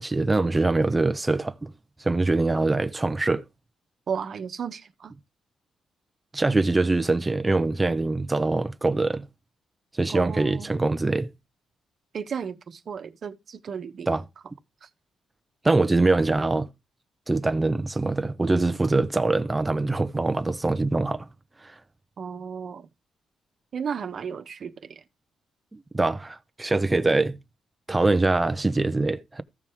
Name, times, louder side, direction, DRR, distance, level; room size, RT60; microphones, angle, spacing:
voice 1, 0.0-1.7 2.0-3.4 6.3-9.3 9.9-11.3 14.1-14.2 15.6-16.7 17.3-21.3 21.6-21.7 25.9-27.4 27.9-29.4, right 2 dB, 15° right, 0.8 m, -23 dB
voice 2, 4.1-5.1 10.1-10.7 12.1-14.2 14.8-14.9 22.2-22.9 23.7-25.0, right 7 dB, 50° right, 1.2 m, -34 dB
15.0 x 5.5 x 4.7 m
cardioid pair, 130°, 0 cm